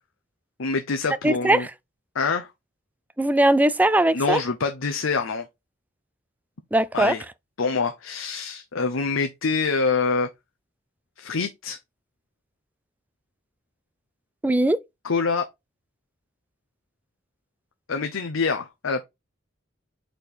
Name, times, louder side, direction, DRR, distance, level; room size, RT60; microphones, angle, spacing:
voice 1, 0.6-1.7 2.1-2.5 4.1-5.5 6.9-7.2 7.6-10.3 11.2-11.8 15.0-15.5 17.9-19.0, left 4 dB, 80° left, 0.7 m, -25 dB
voice 2, 1.2-1.7 3.2-4.4 6.7-7.2 14.4-14.8, right 1 dB, 10° right, 0.3 m, -20 dB
4.4 x 4.3 x 5.0 m
head